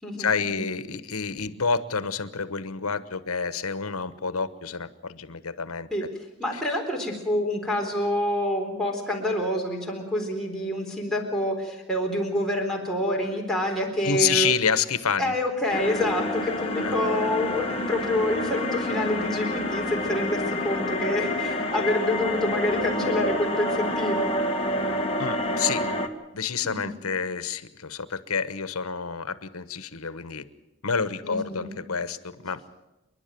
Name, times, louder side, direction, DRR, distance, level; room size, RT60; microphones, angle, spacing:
voice 1, 0.2-6.1 6.5-6.6 14.0-15.3 16.8-16.9 20.5-20.6 25.2-25.9 26.3-30.4 30.8-32.6, left 6 dB, 85° left, 13 dB, 1.1 m, -28 dB
voice 2, 6.4-14.5 15.2-24.3 26.6-26.9 31.2-31.7, left 1 dB, ahead, -2 dB, 3.9 m, -27 dB
sound 1, 15.7-26.1, left 1 dB, 25° left, 1.4 m, -28 dB
28.5 x 11.0 x 9.3 m, 1.0 s
head